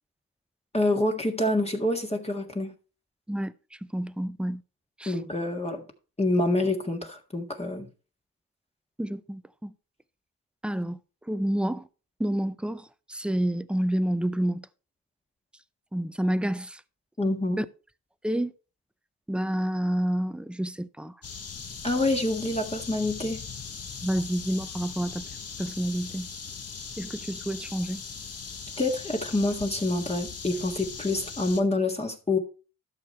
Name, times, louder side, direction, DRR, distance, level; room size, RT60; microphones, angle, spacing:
voice 1, 0.7-2.7 5.1-5.8 6.2-7.9 17.2-17.6 21.8-23.4 28.8-32.4, left 2 dB, 15° left, 1.6 m, -27 dB
voice 2, 3.9-4.6 5.0-5.1 9.0-9.7 10.6-11.0 11.3-11.9 12.2-14.7 15.9-16.8 17.6-17.7 18.2-18.5 19.3-21.1 24.0-25.3 25.6-26.3 27.0-28.0, right 1 dB, 5° right, 0.5 m, -29 dB
sound 1, 21.2-31.6, left 5 dB, 40° left, 1.4 m, -39 dB
12.5 x 6.3 x 4.3 m
cardioid pair, 85°, 36 cm